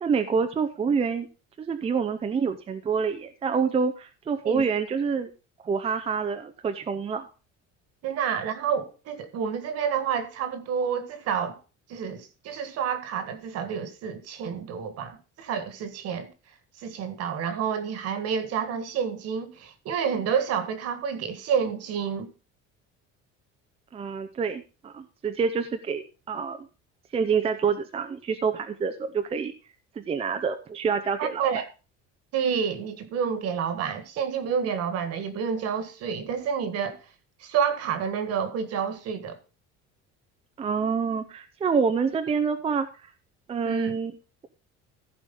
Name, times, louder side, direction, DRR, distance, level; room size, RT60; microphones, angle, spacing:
voice 1, 0.0-1.3 1.6-5.3 5.6-7.2 23.9-26.6 27.1-29.5 30.0-31.5 40.6-43.1 43.5-44.1, right 6 dB, 20° right, 0.6 m, -27 dB
voice 2, 8.0-11.6 11.9-16.3 16.8-22.3 31.2-31.7 32.3-37.0 37.4-39.4 43.6-43.9, right 7 dB, 55° right, 1.7 m, -29 dB
15.0 x 5.1 x 5.2 m
cardioid pair, 170°, 29 cm